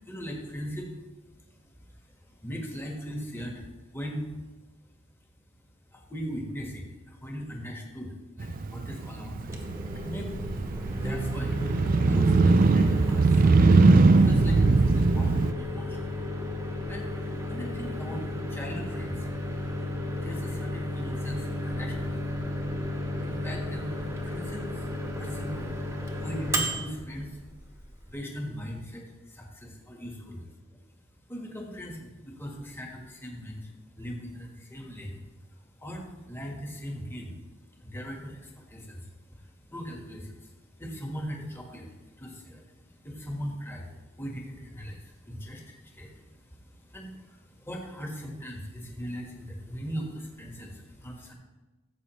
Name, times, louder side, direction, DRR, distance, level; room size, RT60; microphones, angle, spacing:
voice 1, 0.0-1.0 1.4-1.7 2.1-3.7 3.9-4.2 5.9-9.7 9.9-10.4 10.9-11.5 12.1-16.2 16.9-17.1 17.5-19.3 20.1-22.3 23.2-23.9 24.2-24.9 25.1-25.7 26.1-27.4 28.1-30.8 31.3-35.2 35.6-37.3 37.8-51.3, equal, 10° left, 0 dB, 1.4 m, -39 dB
Motorcycle, 8.4-15.5, right 3 dB, 45° right, 0.4 m, -21 dB
Microwave oven, 9.3-28.1, left 1 dB, 15° right, 1.1 m, -33 dB
15.0 x 7.8 x 3.1 m, 1.2 s
head